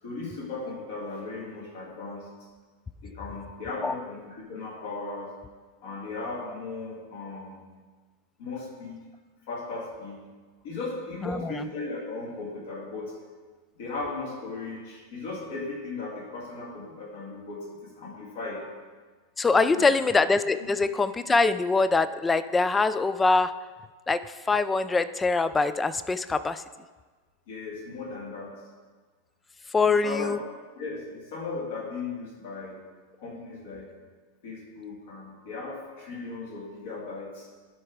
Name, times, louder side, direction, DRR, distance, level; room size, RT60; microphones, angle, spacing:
voice 1, 0.0-2.3 3.0-5.3 5.8-7.6 8.4-9.0 9.5-10.2 10.6-13.1 13.8-18.6 19.5-19.9 20.6-20.7 27.5-28.7 29.8-30.3 30.7-32.8 33.2-33.9 34.4-37.5, left 3 dB, 55° left, -3 dB, 2.1 m, -37 dB
voice 2, 19.4-23.5 24.1-26.6 29.7-30.4, left 3 dB, 15° left, 13 dB, 0.3 m, -23 dB
11.5 x 4.7 x 3.7 m, 1.4 s
figure-of-eight pair, 90°, 0 cm